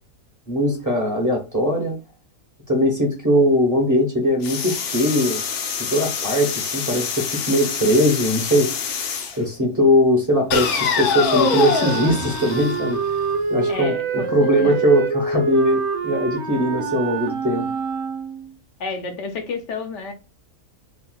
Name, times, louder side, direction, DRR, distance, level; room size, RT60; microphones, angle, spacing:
voice 1, 0.5-2.0 2.7-5.4 5.9-8.7 9.4-13.0 13.5-17.7, equal, 20° right, 0.5 m, -20 dB
sound 1, 4.4-9.4 10.5-13.4, left 6 dB, 85° left, 1.1 m, -25 dB
Wind instrument woodwind instrument, 11.2-18.5, right 5 dB, 65° right, 0.8 m, -26 dB
voice 2, 13.7-14.7 18.8-20.1, left 4 dB, 65° left, 0.8 m, -30 dB
3.6 x 2.3 x 2.3 m
omnidirectional pair, 1.5 m